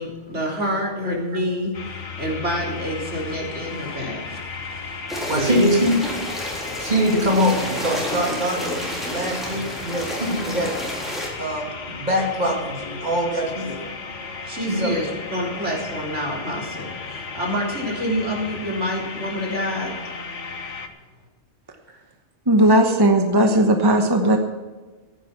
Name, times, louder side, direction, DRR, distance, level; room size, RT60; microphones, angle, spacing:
voice 1, 0.0-5.2 5.4-5.7 14.4-20.0, equal, 80° right, -2 dB, 3.7 m, -28 dB
sound 1, 1.7-20.9, left 4 dB, 90° left, 1.6 m, -35 dB
sound 2, 5.1-11.3, equal, ahead, 3.8 m, -30 dB
voice 2, 5.3-6.0 6.8-8.7 9.1-10.7 11.4-13.8 14.6-15.1, equal, 40° right, -1 dB, 2.9 m, -23 dB
voice 3, 22.5-24.4, right 1 dB, 20° right, 4 dB, 1.1 m, -16 dB
15.5 x 9.3 x 6.0 m, 1.3 s
omnidirectional pair, 1.2 m